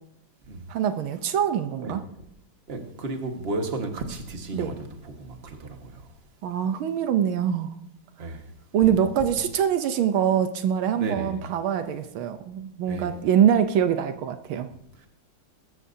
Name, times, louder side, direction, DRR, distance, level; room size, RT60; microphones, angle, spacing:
voice 1, 0.7-2.0 4.5-4.8 6.4-7.7 8.7-14.7, right 9 dB, 80° right, 9 dB, 1.6 m, -24 dB
voice 2, 2.7-4.7 5.0-5.9 8.2-8.4 8.8-8.9 11.0-11.5 12.9-13.1, right 2 dB, 30° right, 4 dB, 1.6 m, -33 dB
21.5 x 12.5 x 2.7 m, 0.75 s
omnidirectional pair, 2.3 m